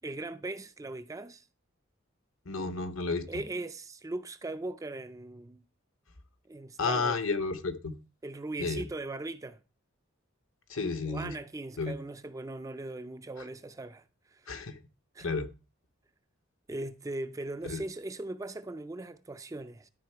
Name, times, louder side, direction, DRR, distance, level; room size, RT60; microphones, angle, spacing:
voice 1, 0.0-1.5 3.3-5.6 6.5-7.2 8.2-9.6 11.1-14.0 14.3-14.5 15.1-15.3 16.7-19.9, right 2 dB, 15° right, 0.3 m, -39 dB
voice 2, 2.5-3.3 6.8-7.9 8.6-8.8 10.7-11.3 11.8-11.9 14.5-14.8 15.2-15.5 17.6-17.8, left 4 dB, 75° left, 1.0 m, -31 dB
12.0 x 4.2 x 4.5 m
head